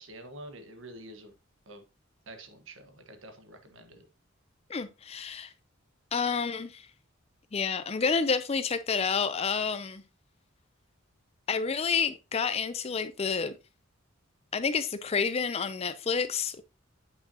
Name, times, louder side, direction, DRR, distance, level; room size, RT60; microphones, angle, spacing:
voice 1, 0.0-1.3 1.7-1.8 2.3-4.1, right 1 dB, 70° right, 1.2 m, -47 dB
voice 2, 4.7-5.5 6.1-6.9 7.5-10.0 11.5-13.6 14.5-16.6, left 5 dB, 30° left, 0.4 m, -29 dB
8.2 x 5.5 x 2.7 m
head